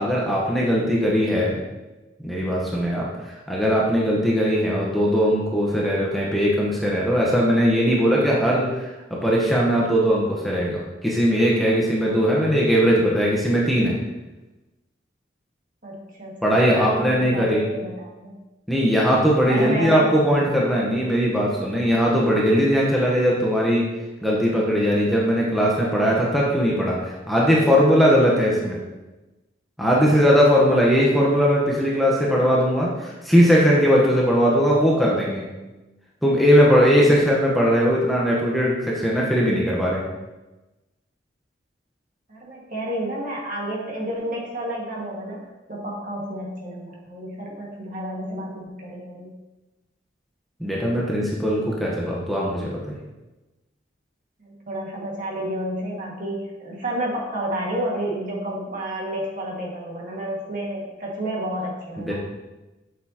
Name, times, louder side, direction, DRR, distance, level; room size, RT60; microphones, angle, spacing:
voice 1, 0.0-1.6 2.2-3.1 3.5-8.9 9.2-14.0 16.4-17.7 18.7-23.8 24.2-28.8 29.8-35.5 36.2-40.0 50.6-53.0 62.0-62.1, equal, ahead, -5 dB, 1.1 m, -19 dB
voice 2, 15.8-18.3 19.5-20.6 30.9-31.0 42.3-49.3 54.4-62.1, right 1 dB, 45° right, -3 dB, 1.9 m, -30 dB
7.9 x 6.9 x 2.9 m, 1.1 s
head